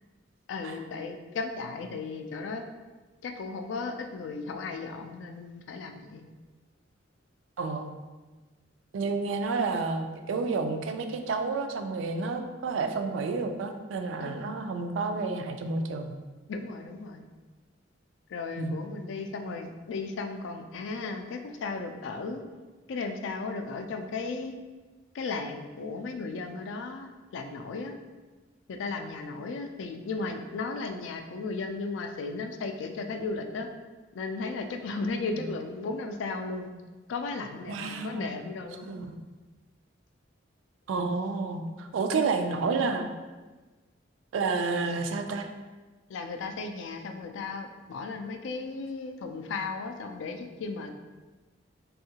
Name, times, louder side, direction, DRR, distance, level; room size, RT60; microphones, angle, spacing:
voice 1, 0.5-2.6 3.2-6.2 14.2-14.5 16.5-17.3 18.3-22.4 22.9-24.5 25.1-27.9 28.7-33.7 34.1-36.7 37.1-38.9 46.1-50.9, left 3 dB, 75° left, 6 dB, 0.3 m, -35 dB
voice 2, 7.6-7.9 8.9-16.2 18.6-18.8 35.1-35.5 37.7-38.4 38.8-39.1 40.9-43.1 44.3-45.5, right 4 dB, 80° right, 6 dB, 0.3 m, -30 dB
3.5 x 2.3 x 2.7 m, 1.3 s
head